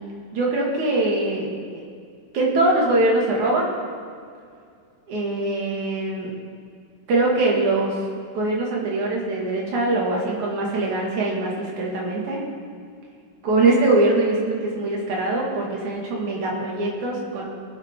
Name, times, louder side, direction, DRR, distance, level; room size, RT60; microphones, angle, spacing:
voice 1, 0.3-1.8 2.3-3.7 5.1-6.3 7.1-8.0 8.4-12.4 13.4-17.4, right 2 dB, 70° right, -2 dB, 3.5 m, -22 dB
21.5 x 8.1 x 3.8 m, 2.3 s
omnidirectional pair, 3.6 m